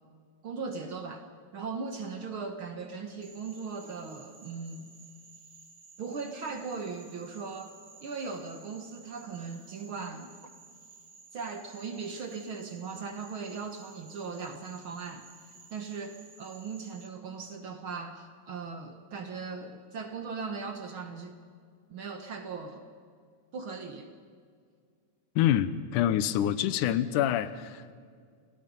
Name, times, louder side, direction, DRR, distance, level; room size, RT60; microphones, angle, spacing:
voice 1, 0.4-1.3 1.5-4.9 6.0-10.3 11.3-15.3 15.7-21.4 21.9-22.8 23.5-24.1, right 5 dB, 50° right, 1.7 m, -38 dB
Frog, 3.2-17.1, right 4 dB, 35° right, 1.7 m, -55 dB
voice 2, 25.4-27.9, left 11 dB, 90° left, 2.3 m, -26 dB
29.0 x 18.5 x 5.4 m
omnidirectional pair, 3.6 m